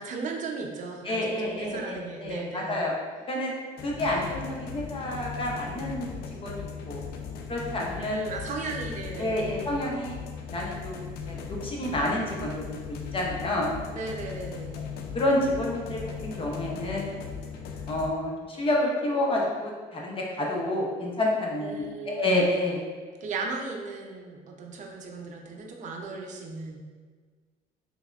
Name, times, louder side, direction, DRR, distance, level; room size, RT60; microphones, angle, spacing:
voice 1, 0.0-2.8 7.9-9.5 13.9-14.8 21.6-22.5 23.2-26.8, right 4 dB, 45° right, 1 dB, 0.6 m, -36 dB
voice 2, 1.0-2.9 3.3-3.5 3.8-6.1 6.4-7.0 7.5-8.2 9.2-10.1 10.5-13.7 15.1-17.0 17.9-22.8, left 1 dB, 30° left, -2 dB, 0.7 m, -29 dB
sound 1, 3.8-18.1, left 6 dB, 70° left, 0.4 m, -38 dB
3.4 x 3.0 x 2.4 m, 1.5 s
cardioid pair, 110°, 17 cm